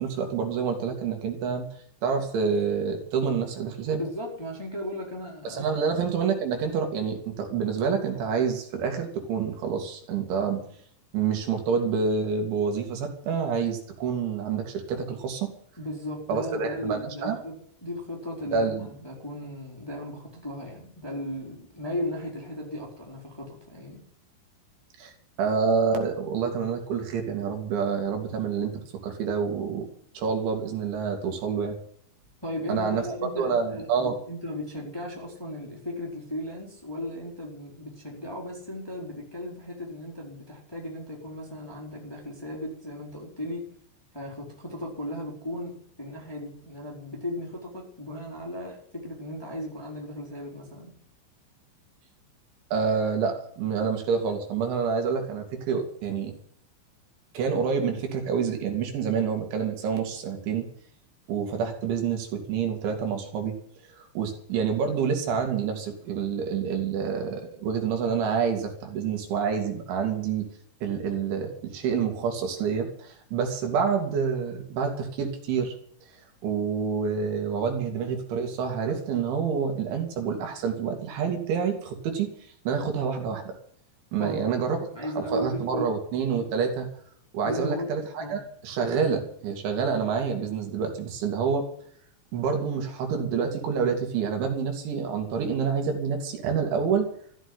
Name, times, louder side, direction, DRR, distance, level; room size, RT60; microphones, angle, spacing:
voice 1, 0.0-1.6 2.0-4.0 5.4-10.7 11.1-15.5 16.3-17.4 18.5-18.9 25.0-29.9 30.1-31.8 32.7-33.0 33.4-34.2 52.7-56.3 57.3-60.7 61.3-63.6 63.9-70.5 70.8-75.7 76.4-82.3 82.7-83.6 84.1-84.9 85.2-86.9 87.3-91.7 92.3-97.1, right 6 dB, 75° right, 3 dB, 4.7 m, -27 dB
voice 2, 3.9-5.9 15.8-24.0 32.4-43.7 44.1-50.9 84.2-85.9 86.4-86.5 87.4-87.9 88.2-88.4, left 1 dB, 5° left, -2 dB, 3.4 m, -36 dB
14.5 x 8.0 x 9.7 m, 0.62 s
omnidirectional pair, 5.5 m